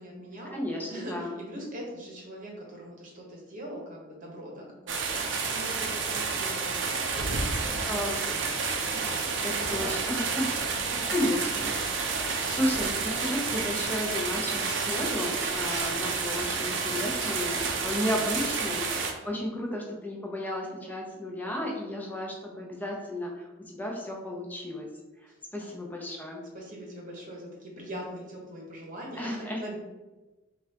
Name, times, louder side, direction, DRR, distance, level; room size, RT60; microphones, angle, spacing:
voice 1, 0.0-0.6 0.9-11.0 11.9-12.3 25.3-25.7 26.5-29.8, right 1 dB, 45° right, -2 dB, 1.0 m, -42 dB
voice 2, 0.5-1.3 7.9-8.2 9.4-10.5 10.8-11.7 12.1-24.9 25.5-26.4 29.2-29.6, left 1 dB, 10° left, -1 dB, 0.7 m, -33 dB
sound 1, 4.9-19.1, right 4 dB, 65° right, 0.6 m, -30 dB
sound 2, 12.4-12.8 13.7-14.9 15.5-16.0 16.9-17.5, left 3 dB, 85° left, 1.0 m, -45 dB
5.4 x 2.5 x 2.8 m, 1.1 s
head